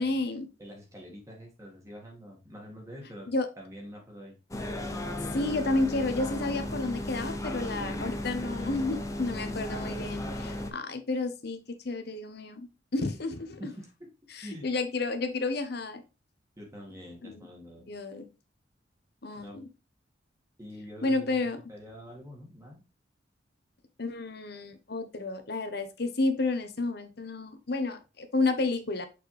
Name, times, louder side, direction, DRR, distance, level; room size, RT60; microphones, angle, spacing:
voice 1, 0.0-0.5 3.3-3.5 5.3-11.6 11.8-13.6 14.3-16.0 17.2-17.5 17.9-18.3 19.2-19.7 21.0-21.6 24.0-29.1, left 3 dB, 55° left, 8 dB, 0.9 m, -31 dB
voice 2, 0.6-3.3 3.6-4.4 13.6-13.9 14.4-14.7 16.6-17.9 19.3-19.6 20.6-21.4 21.7-22.8, equal, 15° right, -1 dB, 1.9 m, -45 dB
sound 1, 4.5-10.7, left 1 dB, 15° left, 0.7 m, -35 dB
6.7 x 4.2 x 3.3 m, 0.29 s
head